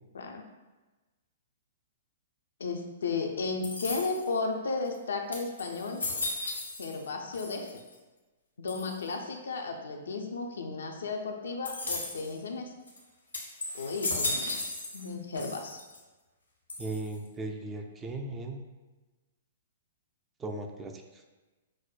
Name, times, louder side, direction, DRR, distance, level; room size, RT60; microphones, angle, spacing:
voice 1, 2.6-6.0 6.8-7.8 8.6-12.7 13.7-14.5 14.9-15.8, left 4 dB, 70° left, 3 dB, 0.4 m, -34 dB
sound 1, 3.6-4.4 4.9-5.0 5.3-7.1 7.3-7.9 8.7-9.1 11.7-12.3 12.9-13.0 13.3-15.1 15.4-16.0 16.7-17.3, left 2 dB, 85° left, 0.9 m, -35 dB
voice 2, 16.8-18.6 20.4-21.2, right 2 dB, 15° right, 4 dB, 0.4 m, -37 dB
6.0 x 2.1 x 2.4 m, 1.2 s
figure-of-eight pair, 115°, 0 cm